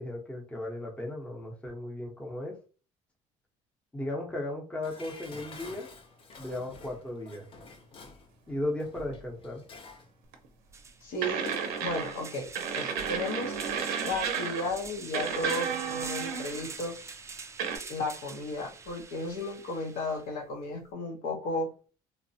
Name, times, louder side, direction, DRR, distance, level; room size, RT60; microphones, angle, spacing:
voice 1, 0.0-2.5 3.9-5.9 6.4-7.5 8.5-9.6, left 1 dB, 10° left, 0.8 m, -36 dB
Dishes pots and pans, 4.8-10.1 10.4-10.5, left 3 dB, 40° left, 0.5 m, -49 dB
sound 1, 10.2-10.3 10.7-20.2, right 4 dB, 20° right, 0.3 m, -45 dB
sound 2, 10.3-10.5 11.2-12.3 12.6-14.8 15.1-16.7 17.6-17.8, right 6 dB, 85° right, 0.6 m, -32 dB
voice 2, 11.0-11.6 11.8-12.5 12.8-13.5 14.0-17.0 17.9-21.7, left 2 dB, 75° left, 0.8 m, -34 dB
3.0 x 2.0 x 2.7 m
cardioid pair, 110°, 15 cm